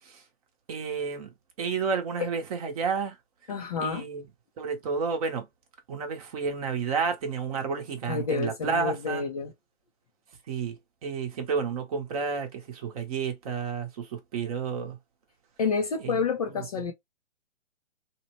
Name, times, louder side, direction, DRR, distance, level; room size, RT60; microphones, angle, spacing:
voice 1, 0.7-1.3 1.6-3.1 3.8-4.3 4.6-5.5 5.9-9.2 10.5-10.8 11.0-15.0 16.0-16.2 16.5-16.6, right 5 dB, 30° right, 0.8 m, -31 dB
voice 2, 3.5-4.0 8.1-9.5 15.6-16.9, left 5 dB, 35° left, 0.4 m, -29 dB
2.8 x 2.1 x 2.9 m
hypercardioid pair, 140°, 36 cm